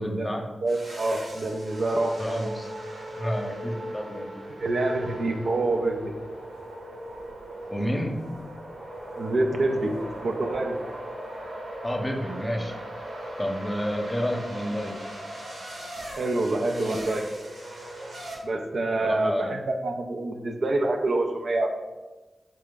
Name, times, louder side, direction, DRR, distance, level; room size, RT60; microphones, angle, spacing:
voice 1, 0.0-0.4 2.2-2.7 3.1-4.4 5.0-5.1 7.7-8.2 11.8-12.7 13.4-15.0 19.0-19.6, equal, 15° left, 2 dB, 0.8 m, -30 dB
voice 2, 0.6-2.1 4.6-6.1 9.2-10.8 16.2-17.2 18.4-21.7, right 2 dB, 65° right, 4 dB, 0.4 m, -26 dB
sound 1, 0.7-18.4, right 1 dB, 85° right, 1.1 m, -38 dB
3.5 x 3.3 x 3.8 m, 1.2 s
cardioid pair, 50°, 0 cm